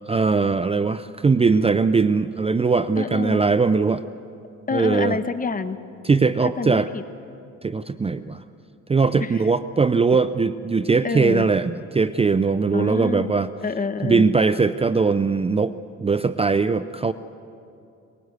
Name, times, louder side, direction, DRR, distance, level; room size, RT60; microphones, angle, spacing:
voice 1, 0.1-4.0 4.7-5.2 6.0-6.9 7.6-8.4 8.9-13.5 14.0-15.7 16.0-17.1, right 4 dB, 20° right, 13 dB, 0.5 m, -20 dB
voice 2, 3.0-3.4 4.7-5.8 6.6-7.0 9.2-9.3 11.0-11.5 12.7-13.3 13.6-14.3, left 4 dB, 30° left, 11 dB, 1.1 m, -27 dB
23.5 x 20.0 x 8.1 m, 2.6 s
cardioid pair, 90°, 30 cm